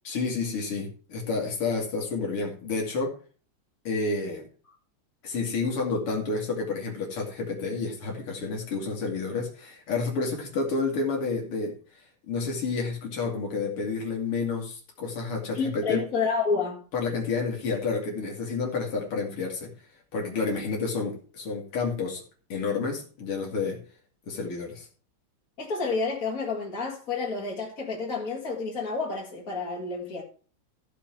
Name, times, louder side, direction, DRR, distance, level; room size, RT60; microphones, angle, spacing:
voice 1, 0.0-3.1 3.8-4.4 5.2-11.7 12.3-16.0 16.9-19.7 20.1-22.2 22.5-23.8 24.3-24.9, left 4 dB, 90° left, 3.2 m, -30 dB
voice 2, 15.5-16.8 25.6-30.2, left 4 dB, 40° left, 2.4 m, -29 dB
13.5 x 6.9 x 4.5 m
omnidirectional pair, 2.4 m